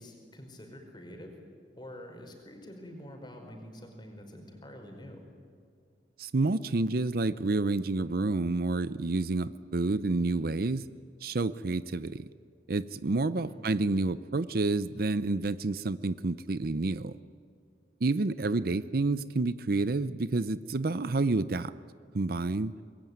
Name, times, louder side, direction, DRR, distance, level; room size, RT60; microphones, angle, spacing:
voice 1, 0.0-1.4 1.7-5.2 13.3-13.6, equal, 25° left, 3 dB, 5.0 m, -46 dB
voice 2, 6.2-10.9 11.2-12.2 12.7-17.1 18.0-21.7 22.1-22.7, right 3 dB, 55° right, 15 dB, 0.6 m, -29 dB
26.0 x 21.5 x 9.5 m, 2.3 s
head